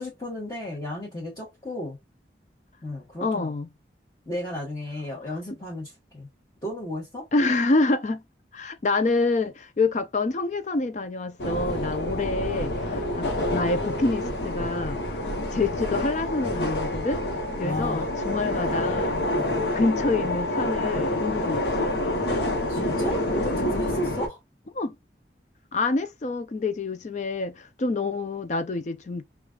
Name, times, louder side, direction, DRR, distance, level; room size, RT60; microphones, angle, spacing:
voice 1, 0.0-2.0 2.8-3.5 4.3-6.3 6.6-7.2 17.6-18.1 19.2-19.5 22.2-24.4, left 1 dB, 20° left, 1.2 m, -34 dB
voice 2, 3.2-3.7 7.3-8.2 8.5-17.2 17.6-19.2 19.7-21.9 24.8-24.9 25.7-29.2, left 3 dB, 40° left, 0.4 m, -27 dB
sound 1, 11.4-24.3, left 1 dB, 75° left, 1.0 m, -27 dB
5.0 x 2.3 x 2.4 m
head